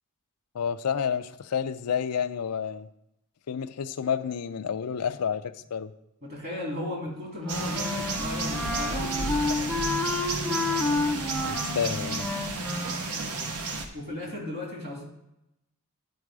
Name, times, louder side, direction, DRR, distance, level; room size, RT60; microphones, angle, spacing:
voice 1, 0.5-2.9 3.5-5.9 11.3-12.3, left 7 dB, 90° left, 11 dB, 0.4 m, -30 dB
voice 2, 6.2-9.8 10.4-10.6 13.2-13.5 13.9-15.0, left 1 dB, 50° right, -1 dB, 2.6 m, -36 dB
Wind instrument woodwind instrument, 7.4-13.0, left 2 dB, 5° left, 0.6 m, -30 dB
sound 1, 7.5-13.9, right 3 dB, 85° right, 1.0 m, -32 dB
10.5 x 4.7 x 4.8 m, 0.85 s
head